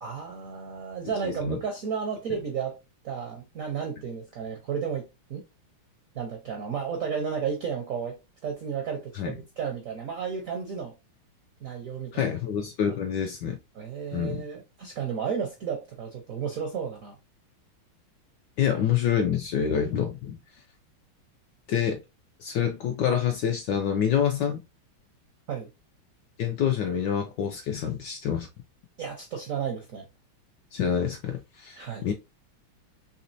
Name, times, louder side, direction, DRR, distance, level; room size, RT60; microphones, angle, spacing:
voice 1, 0.0-2.8 3.0-5.0 5.3-5.4 6.1-10.9 11.6-12.3 13.7-17.2 25.5-25.7 29.0-30.0 31.8-32.1, right 6 dB, 70° right, 0.8 m, -33 dB
voice 2, 1.2-1.6 9.1-9.3 12.1-13.6 14.1-14.4 18.6-20.4 21.7-22.0 22.4-24.6 26.4-28.5 30.7-32.1, left 8 dB, 75° left, 1.0 m, -27 dB
4.1 x 3.0 x 2.6 m
omnidirectional pair, 2.3 m